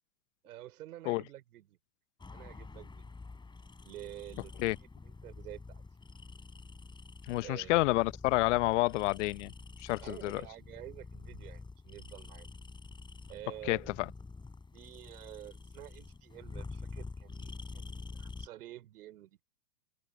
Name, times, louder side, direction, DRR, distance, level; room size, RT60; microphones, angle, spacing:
voice 1, 0.4-1.8 2.3-3.1 3.8-5.8 7.4-7.8 10.0-12.5 13.3-13.9 14.7-19.4, right 14 dB, 65° right, 5.0 m, -49 dB
sound 1, 2.2-18.5, left 3 dB, 10° left, 5.2 m, -47 dB
voice 2, 7.3-9.5 9.8-10.4 13.7-13.8, left 20 dB, 45° left, 0.8 m, -29 dB
hypercardioid pair, 120°, 49 cm